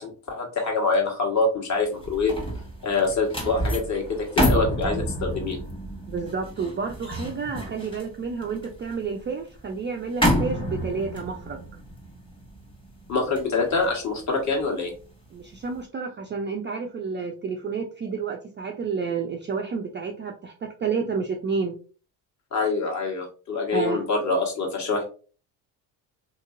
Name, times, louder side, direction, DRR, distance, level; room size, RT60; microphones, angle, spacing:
voice 1, 0.0-2.3 2.8-5.6 13.1-14.9 22.5-25.0, left 3 dB, 35° left, 1 dB, 1.3 m, -25 dB
sound 1, 1.8-15.1 15.5-15.8, equal, 10° left, 1.1 m, -29 dB
voice 2, 6.1-11.6 15.3-21.7 23.7-24.0, right 5 dB, 25° right, 2 dB, 0.4 m, -30 dB
2.9 x 2.8 x 2.4 m, 0.38 s
supercardioid pair, 75°, 48 cm